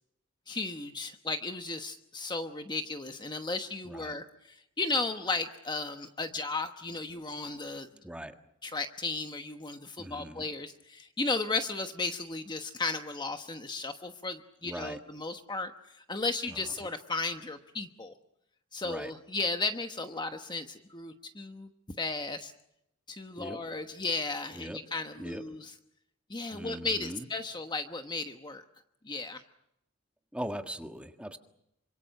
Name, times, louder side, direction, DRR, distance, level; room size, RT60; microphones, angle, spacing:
voice 1, 0.5-7.9 8.6-18.1 18.7-21.7 22.0-22.5 23.1-25.7 26.3-28.6 29.0-29.4, left 3 dB, 20° left, 7 dB, 1.1 m, -35 dB
voice 2, 10.0-10.4 14.6-15.0 16.5-16.6 18.8-19.1 23.4-23.6 24.5-24.8 25.2-25.4 26.5-27.3 30.3-31.4, equal, 5° right, 6 dB, 1.6 m, -40 dB
27.5 x 25.5 x 6.6 m, 0.79 s
head